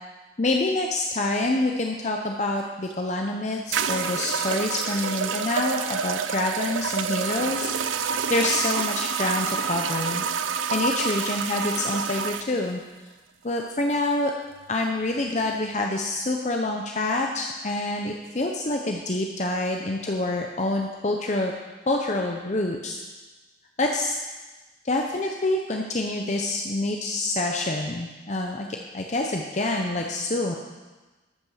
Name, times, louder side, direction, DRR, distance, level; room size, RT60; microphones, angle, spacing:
voice 1, 0.4-7.7 8.0-10.2 10.7-12.8 13.4-14.3 14.7-21.5 21.9-23.0 23.8-24.2 24.8-28.7 28.9-30.5, left 2 dB, 35° left, 2 dB, 0.7 m, -26 dB
sound 1, 2.9-3.0 3.7-12.5, right 6 dB, 85° right, 0.5 m, -28 dB
13.5 x 5.9 x 6.4 m, 1.2 s
head